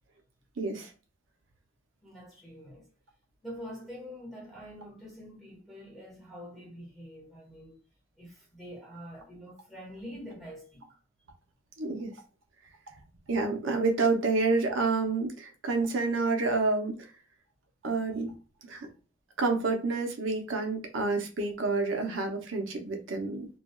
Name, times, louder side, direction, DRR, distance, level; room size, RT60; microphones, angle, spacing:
voice 1, 0.6-0.9 11.8-12.1 13.3-17.1 17.8-18.3 18.7-18.9 19.4-23.5, right 3 dB, 80° right, 0.6 m, -28 dB
voice 2, 2.0-2.9 3.4-7.8 8.2-11.0, equal, ahead, 1.3 m, -45 dB
3.2 x 2.2 x 2.2 m
head